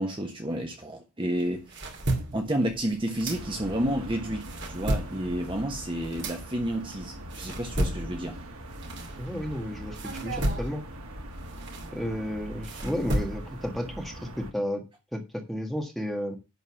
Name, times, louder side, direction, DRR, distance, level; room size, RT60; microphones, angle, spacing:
voice 1, 0.0-1.7 2.3-8.4, right 1 dB, 20° right, 1.2 m, -30 dB
sound 1, 1.4-3.9 4.3-9.6 9.9-13.7, right 1 dB, 50° right, 2.5 m, -33 dB
sound 2, 3.3-14.5, right 1 dB, 75° right, 1.9 m, -42 dB
voice 2, 9.2-10.8 11.9-14.8 15.1-16.4, equal, ahead, 1.8 m, -32 dB
11.0 x 4.2 x 7.1 m
head